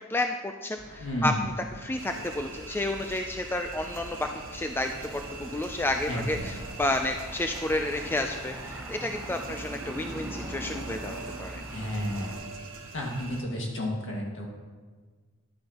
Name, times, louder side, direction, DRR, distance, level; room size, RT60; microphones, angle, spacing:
voice 1, 0.1-1.3 1.8-11.6, left 2 dB, 10° left, 5 dB, 0.3 m, -31 dB
sound 1, 0.8-8.4, equal, 45° right, 1.5 m, -47 dB
voice 2, 1.0-1.5 6.1-6.6 11.7-12.4 12.9-14.5, equal, 60° left, -1 dB, 1.8 m, -31 dB
sound 2, 2.0-13.4, right 3 dB, 60° right, 1.2 m, -43 dB
sound 3, 4.8-12.3, right 1 dB, 10° right, 1.7 m, -42 dB
11.0 x 8.7 x 2.9 m, 1.4 s
head